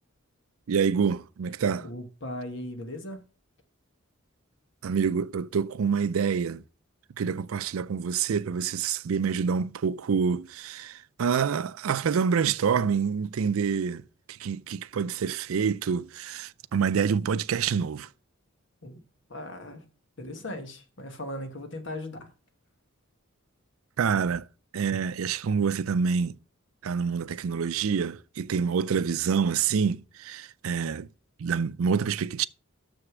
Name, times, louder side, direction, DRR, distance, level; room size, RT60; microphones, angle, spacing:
voice 1, 0.7-1.9 4.8-6.6 7.2-14.0 14.3-18.1 24.0-24.4 24.7-26.3 26.8-31.1 31.4-32.5, right 6 dB, 85° right, 0.4 m, -27 dB
voice 2, 1.8-3.2 18.8-19.0 19.3-19.8 20.2-22.3, left 1 dB, 60° left, 1.5 m, -38 dB
6.8 x 6.5 x 6.1 m
head